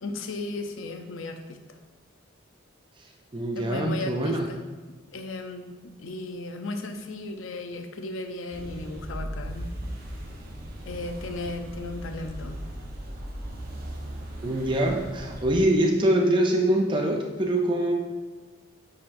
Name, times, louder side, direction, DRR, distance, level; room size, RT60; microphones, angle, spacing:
voice 1, 0.0-1.6 3.6-4.6 5.1-9.7 10.9-12.6, left 2 dB, 85° left, 6 dB, 0.6 m, -35 dB
voice 2, 3.3-4.5 14.4-17.9, right 1 dB, 25° right, 1 dB, 0.4 m, -24 dB
sound 1, 8.5-15.6, right 1 dB, 50° right, 0.9 m, -38 dB
9.6 x 4.2 x 2.6 m, 1.3 s
head